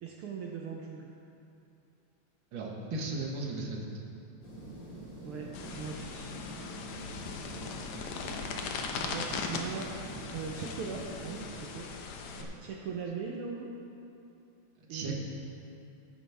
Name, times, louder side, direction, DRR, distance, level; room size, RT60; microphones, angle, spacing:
voice 1, 0.0-1.1 5.2-6.3 9.0-9.9 10.3-11.9 12.6-13.7 14.9-15.1, right 6 dB, 85° right, -1 dB, 1.2 m, -40 dB
voice 2, 2.5-4.1 12.3-12.5 14.9-15.1, right 2 dB, 50° right, -1 dB, 1.7 m, -36 dB
sound 1, 4.4-11.5, right 1 dB, 45° left, 3.3 m, -45 dB
sound 2, 5.5-12.4, left 5 dB, 75° left, 2.0 m, -39 dB
17.0 x 9.3 x 3.5 m, 2.7 s
omnidirectional pair, 3.5 m